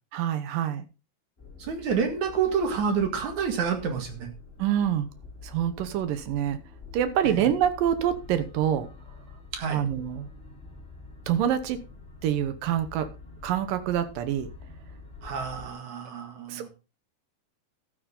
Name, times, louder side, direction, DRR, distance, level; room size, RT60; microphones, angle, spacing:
voice 1, 0.1-0.9 4.6-5.1 5.4-6.6 6.9-8.9 9.7-10.3 11.3-11.8 12.2-13.1 13.4-14.5 16.5-16.7, right 10 dB, 70° right, 11 dB, 2.3 m, -26 dB
sound 1, 1.4-15.7, left 3 dB, 15° left, 3.0 m, -47 dB
voice 2, 1.6-4.3 7.2-7.5 9.5-9.8 15.2-16.7, right 6 dB, 55° right, 5 dB, 2.9 m, -28 dB
12.5 x 9.5 x 3.8 m, 0.31 s
omnidirectional pair, 4.7 m